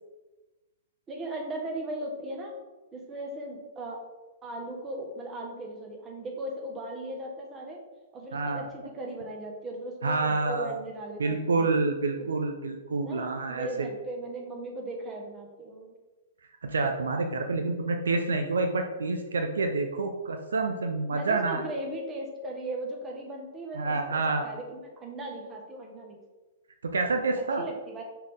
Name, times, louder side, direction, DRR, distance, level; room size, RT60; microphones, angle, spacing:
voice 1, 1.1-2.5 2.9-4.0 4.4-7.8 8.1-11.7 13.0-15.9 17.5-17.7 21.1-26.2 27.4-28.0, right 1 dB, 20° right, 0 dB, 1.4 m, -38 dB
voice 2, 8.3-8.6 10.0-10.7 11.2-13.9 16.6-21.6 23.7-24.4 26.8-27.6, right 3 dB, 75° right, 4 dB, 0.6 m, -28 dB
5.9 x 4.5 x 3.6 m, 1.2 s
figure-of-eight pair, 115°, 0 cm